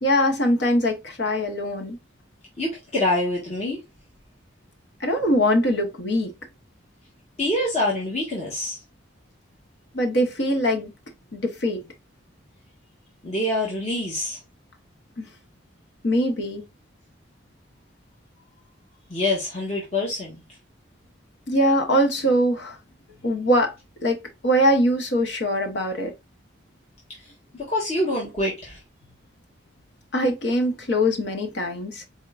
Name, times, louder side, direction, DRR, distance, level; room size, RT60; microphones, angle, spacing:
voice 1, 0.0-2.0 5.0-6.3 9.9-10.9 11.3-11.8 16.0-16.6 21.5-22.8 23.2-23.7 24.0-26.1 30.1-32.0, equal, 60° left, 0.9 m, -22 dB
voice 2, 2.6-3.8 7.4-8.8 13.2-14.4 19.1-20.3 27.5-28.8, left 1 dB, 35° left, 1.3 m, -25 dB
4.3 x 3.6 x 2.4 m
head